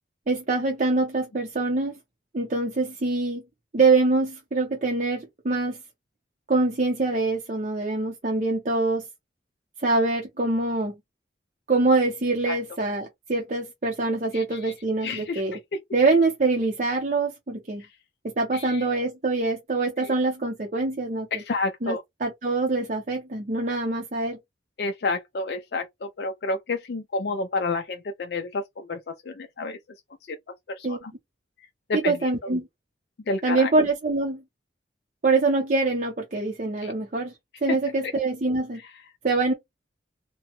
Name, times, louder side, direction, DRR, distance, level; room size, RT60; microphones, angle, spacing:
voice 1, 0.3-1.9 2.3-3.4 3.7-5.8 6.5-9.0 9.8-10.9 11.7-15.6 15.9-17.8 18.2-21.4 21.8-24.4 30.8-31.0 31.9-32.7 33.4-34.4 35.2-37.3 37.6-38.8 39.2-39.5, right 3 dB, 40° right, 0.6 m, -24 dB
voice 2, 14.3-14.7 15.0-15.4 18.5-18.8 21.3-22.0 24.8-29.0 29.3-29.8 30.8-31.0 31.9-32.3 33.3-33.7 36.8-36.9 37.7-37.8, left 3 dB, 55° left, 0.4 m, -29 dB
2.9 x 2.2 x 2.9 m
head